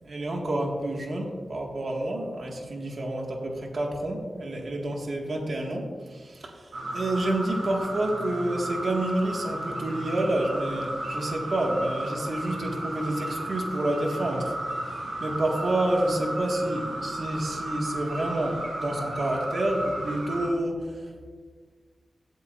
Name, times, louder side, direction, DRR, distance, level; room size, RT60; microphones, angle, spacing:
voice 1, 0.0-21.3, right 1 dB, 65° right, 0 dB, 2.0 m, -29 dB
sound 1, 6.7-20.5, right 1 dB, 85° right, 2.7 m, -34 dB
16.5 x 8.0 x 2.6 m, 1.5 s
wide cardioid pair, 95°, 0 cm